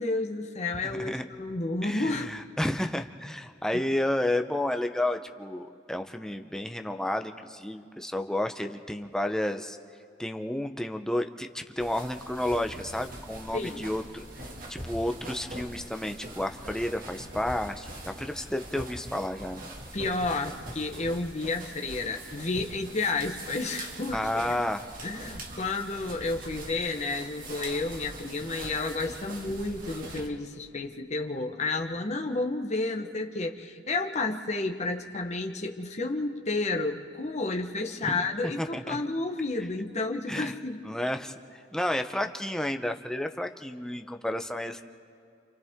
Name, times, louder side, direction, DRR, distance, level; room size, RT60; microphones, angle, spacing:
voice 1, 0.0-2.3 13.5-13.9 19.9-24.5 25.0-40.8, left 3 dB, 40° left, 3 dB, 1.2 m, -31 dB
voice 2, 0.8-1.2 1.8-9.8 10.2-14.2 14.7-19.7 24.1-24.8 38.1-39.0 40.3-40.5 40.8-44.8, left 1 dB, 5° left, 5 dB, 0.8 m, -31 dB
sound 1, 11.8-30.3, right 1 dB, 50° right, 2.3 m, -42 dB
29.5 x 28.0 x 3.7 m, 2.5 s
head